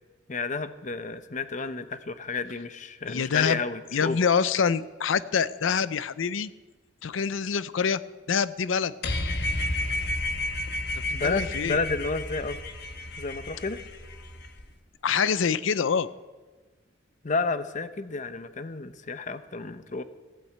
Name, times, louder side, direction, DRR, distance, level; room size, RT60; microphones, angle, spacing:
voice 1, 0.3-4.2 11.1-12.6 13.2-13.8 17.2-20.0, left 4 dB, 40° left, 11 dB, 0.8 m, -31 dB
voice 2, 3.1-3.6 3.9-6.5 7.0-8.0 8.3-8.9 11.2-11.8 15.0-16.1, left 6 dB, 85° left, 16 dB, 0.5 m, -25 dB
sound 1, 9.0-14.6, left 1 dB, 60° left, 1.3 m, -31 dB
14.5 x 8.5 x 8.5 m, 1.3 s
head